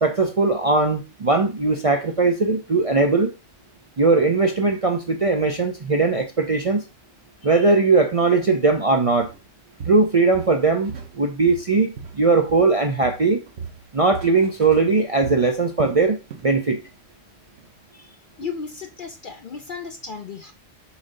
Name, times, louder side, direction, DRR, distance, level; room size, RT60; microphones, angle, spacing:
voice 1, 0.0-3.3 4.0-6.8 7.4-9.3 9.9-13.4 13.9-16.2 16.4-16.8, right 3 dB, 45° right, 0.5 m, -19 dB
Walk footsteps, 9.2-9.4 9.8-11.2 11.5-12.8 13.0-16.6 16.9-17.1 17.6-17.7, right 6 dB, 60° right, 1.1 m, -37 dB
voice 2, 18.4-20.5, left 6 dB, 55° left, 0.6 m, -34 dB
7.2 x 2.7 x 5.1 m
omnidirectional pair, 1.3 m